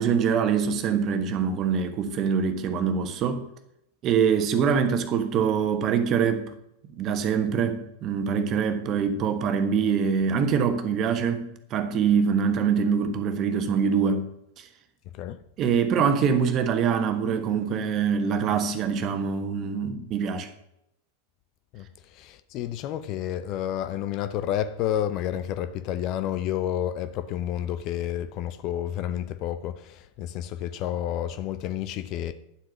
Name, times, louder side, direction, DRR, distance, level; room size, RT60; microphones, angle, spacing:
voice 1, 0.0-3.4 4.0-6.5 7.0-14.3 14.6-14.7 15.6-20.5, right 6 dB, 35° right, 1.5 m, -24 dB
voice 2, 22.1-32.3, left 11 dB, 40° left, 0.7 m, -30 dB
11.0 x 7.8 x 6.2 m
figure-of-eight pair, 90°, 0 cm